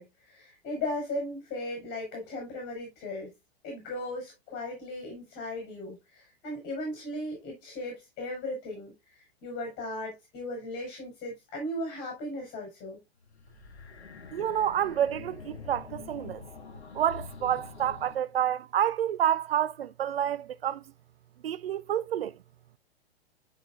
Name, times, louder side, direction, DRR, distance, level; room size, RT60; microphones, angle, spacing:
voice 1, 0.0-3.3 3.6-13.0, left 1 dB, 30° left, 5.3 m, -37 dB
sound 1, 13.2-18.2, left 5 dB, 80° left, 1.5 m, -45 dB
voice 2, 14.3-16.4 16.9-20.8 21.4-22.3, right 10 dB, 65° right, 0.6 m, -28 dB
10.5 x 6.1 x 2.5 m
figure-of-eight pair, 110°, 32 cm